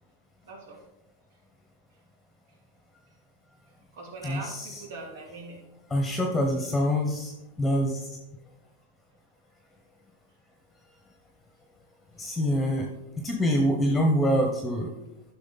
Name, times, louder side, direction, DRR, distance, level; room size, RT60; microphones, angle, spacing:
voice 1, 0.4-0.8 3.9-5.6 5.9-6.5, right 2 dB, 75° right, -1 dB, 3.2 m, -42 dB
voice 2, 4.2-4.7 5.9-7.3 7.6-8.0 12.2-12.9 13.2-14.9, equal, 5° left, 2 dB, 0.9 m, -25 dB
10.5 x 6.1 x 4.0 m, 0.92 s
supercardioid pair, 155°, 0 cm